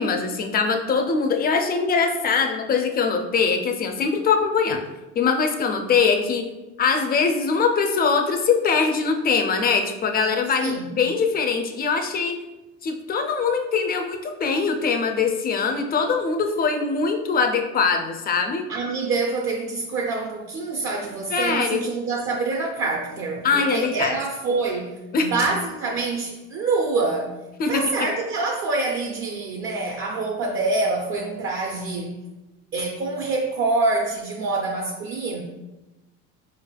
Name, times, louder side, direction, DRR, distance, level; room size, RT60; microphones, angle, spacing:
voice 1, 0.0-4.8 5.2-6.4 6.8-12.4 12.8-18.7 21.3-21.8 23.4-24.1 25.1-25.3 27.6-27.8, left 5 dB, 30° left, 5 dB, 0.4 m, -22 dB
voice 2, 18.7-27.3 27.7-32.2 32.7-35.4, right 3 dB, 40° right, 1 dB, 0.5 m, -26 dB
4.3 x 3.3 x 2.3 m, 1.1 s
supercardioid pair, 115°, 32 cm